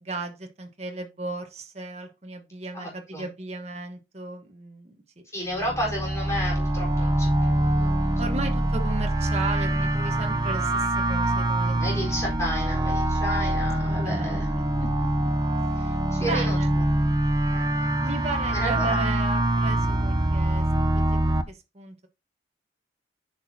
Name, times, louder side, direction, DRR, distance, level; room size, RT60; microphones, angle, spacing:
voice 1, 0.0-5.0 5.4-5.7 8.2-11.8 13.8-15.1 15.6-16.7 18.0-22.1, right 3 dB, 35° right, 1.2 m, -36 dB
voice 2, 2.7-3.3 5.3-8.1 11.8-14.5 15.8-16.6 17.5-17.6 18.5-19.1, equal, 15° left, 4.4 m, -32 dB
sound 1, 5.5-21.4, right 1 dB, 20° right, 0.7 m, -24 dB
10.0 x 6.1 x 2.8 m
head